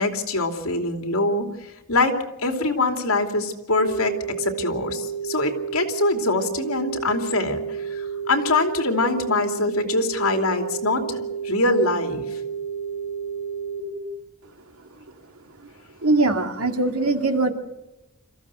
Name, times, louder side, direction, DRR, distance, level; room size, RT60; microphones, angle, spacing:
voice 1, 0.0-7.6 7.9-12.2, left 2 dB, 70° left, 5 dB, 2.9 m, -24 dB
sound 1, 3.8-13.8, right 6 dB, 50° left, 3.3 m, -31 dB
voice 2, 16.0-17.5, right 2 dB, 85° right, 6 dB, 2.2 m, -21 dB
26.0 x 15.0 x 8.0 m, 0.98 s
head